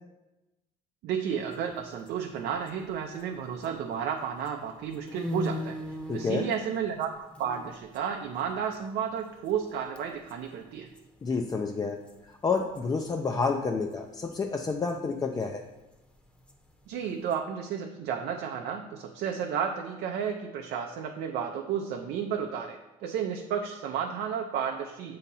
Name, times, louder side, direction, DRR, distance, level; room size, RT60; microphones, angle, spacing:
voice 1, 1.0-10.9 16.9-25.2, right 7 dB, 75° right, 3 dB, 0.5 m, -32 dB
sound 1, 1.4-3.9 4.2-9.7 10.0-10.4 10.6-10.7 11.0-13.5 13.8-17.4, left 1 dB, 5° left, 0.8 m, -40 dB
voice 2, 6.1-6.5 11.2-12.0 12.4-15.6, left 4 dB, 20° left, 3 dB, 0.4 m, -29 dB
7.1 x 2.9 x 5.3 m, 1.0 s
cardioid pair, 110°, 17 cm